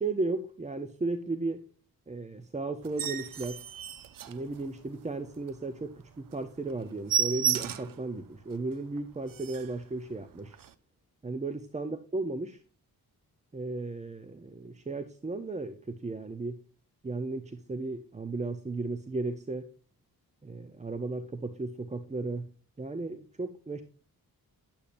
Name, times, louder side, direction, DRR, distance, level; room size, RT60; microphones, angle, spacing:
voice 1, 0.0-1.6 2.1-3.6 4.3-10.6 11.2-12.6 13.5-16.6 17.0-19.7 20.4-22.5 22.8-23.8, right 3 dB, 20° right, 9 dB, 0.6 m, -35 dB
sound 1, 2.8-5.0 5.4-5.5 5.9-6.0 6.3-6.4 6.7-8.0 8.5-8.6 9.0-9.1 9.3-9.8 10.5-10.7, right 8 dB, 60° right, 0.7 m, -32 dB
10.5 x 8.3 x 2.6 m, 0.40 s
cardioid pair, 85°, 38 cm